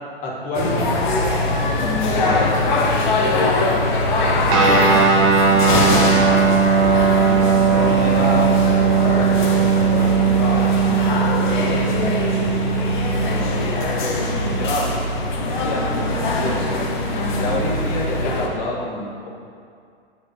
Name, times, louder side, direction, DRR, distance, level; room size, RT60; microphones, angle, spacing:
voice 1, 0.2-1.3 1.7-2.9 3.3-3.9 4.3-5.1 5.5-6.3 7.3-12.9 13.3-13.5 14.0-14.9 15.6-16.7 17.3-19.3, left 1 dB, 25° left, -4 dB, 1.2 m, -28 dB
sound 1, 0.5-18.5, left 2 dB, 45° left, 1.0 m, -22 dB
Guitar, 4.5-14.4, right 6 dB, 25° right, 0.8 m, -18 dB
8.9 x 5.0 x 2.8 m, 2.3 s
figure-of-eight pair, 110°, 33 cm